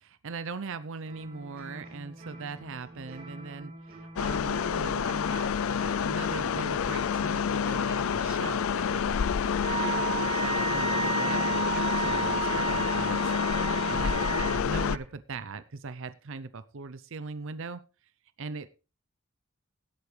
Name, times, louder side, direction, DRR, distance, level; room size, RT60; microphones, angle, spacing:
voice 1, 0.0-9.2 9.7-17.8 18.4-18.8, right 4 dB, 65° right, 13 dB, 0.7 m, -40 dB
sound 1, 1.0-15.1, right 1 dB, 45° right, 4.3 m, -46 dB
sound 2, 4.2-15.0, left 7 dB, 75° left, 0.5 m, -28 dB
Wind instrument woodwind instrument, 9.6-14.6, right 6 dB, 30° right, 0.7 m, -32 dB
17.5 x 8.2 x 3.3 m, 0.32 s
head